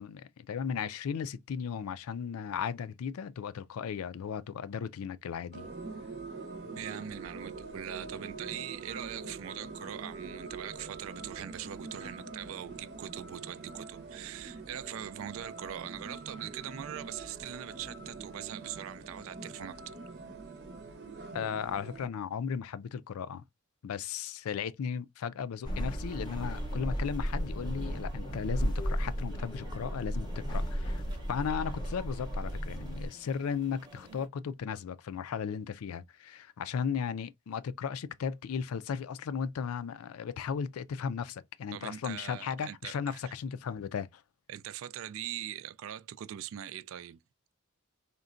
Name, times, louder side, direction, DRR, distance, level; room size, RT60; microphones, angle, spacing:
voice 1, 0.0-5.7 21.3-23.4 23.8-31.0 31.3-44.2, left 7 dB, 90° left, 0.4 m, -36 dB
sound 1, 5.5-22.1, right 3 dB, 50° right, 0.7 m, -44 dB
voice 2, 6.8-20.0 41.7-43.3 44.5-47.2, right 11 dB, 70° right, 0.3 m, -42 dB
sound 2, 25.6-33.1, equal, 20° left, 0.6 m, -34 dB
sound 3, 26.0-34.3, right 1 dB, 20° right, 0.7 m, -53 dB
3.8 x 2.2 x 2.4 m
head